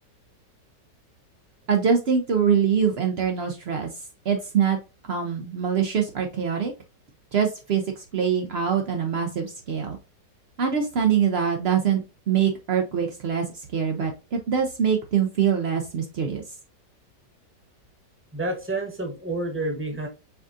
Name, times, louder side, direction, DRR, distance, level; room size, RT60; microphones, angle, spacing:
voice 1, 1.7-3.9 4.3-4.8 5.1-6.7 7.3-7.8 8.1-10.0 10.6-13.4 13.7-16.4, right 7 dB, 85° right, 3 dB, 0.5 m, -24 dB
voice 2, 18.3-20.1, right 2 dB, 10° right, 2 dB, 0.8 m, -29 dB
4.9 x 3.6 x 2.5 m, 0.31 s
omnidirectional pair, 1.9 m